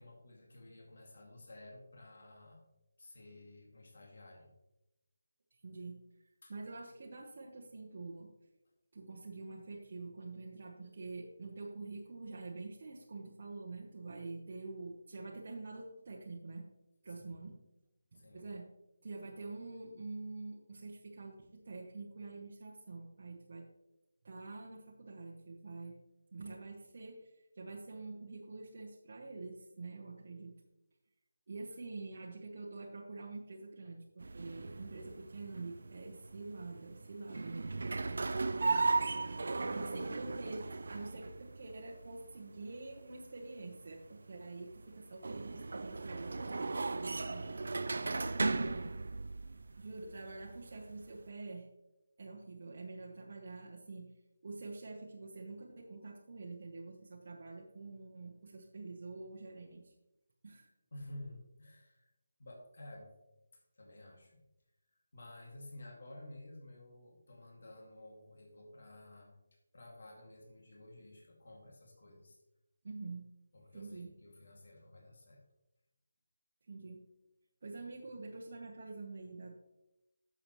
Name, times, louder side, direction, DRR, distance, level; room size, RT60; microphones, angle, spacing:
voice 1, 0.0-2.6 3.0-4.5 6.4-6.5 17.1-17.5 18.1-18.5 39.5-39.8 60.9-62.1 62.4-63.1 63.5-64.4 64.9-72.4 73.5-75.4, left 1 dB, 50° left, -1 dB, 2.2 m, -53 dB
voice 2, 5.5-6.0 6.5-8.3 8.9-16.6 17.0-17.6 18.1-18.7 19.0-23.7 24.2-26.0 26.3-30.6 31.5-38.2 39.7-47.6 48.5-48.9 49.8-51.7 52.2-54.1 54.4-59.9 60.4-60.7 72.8-73.3 73.7-74.1 76.7-77.0 77.6-79.5, right 3 dB, 35° right, -3 dB, 0.9 m, -46 dB
sound 1, 34.2-51.3, right 3 dB, 55° right, 0.4 m, -37 dB
10.5 x 7.1 x 3.0 m, 0.92 s
figure-of-eight pair, 180°, 0 cm